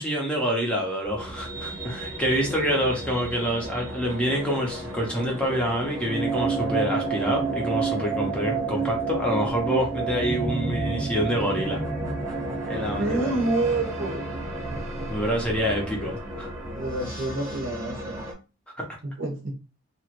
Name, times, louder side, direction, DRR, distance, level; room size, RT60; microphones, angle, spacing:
voice 1, 0.0-11.8 12.7-13.3 15.1-16.5 18.8-18.9, equal, 5° left, -1 dB, 0.6 m, -27 dB
sound 1, 1.0-18.3, right 3 dB, 15° right, 0.9 m, -31 dB
voice 2, 13.0-14.2 16.7-18.2 19.0-19.5, right 2 dB, 60° right, 4 dB, 0.7 m, -28 dB
2.9 x 2.4 x 2.9 m, 0.31 s
head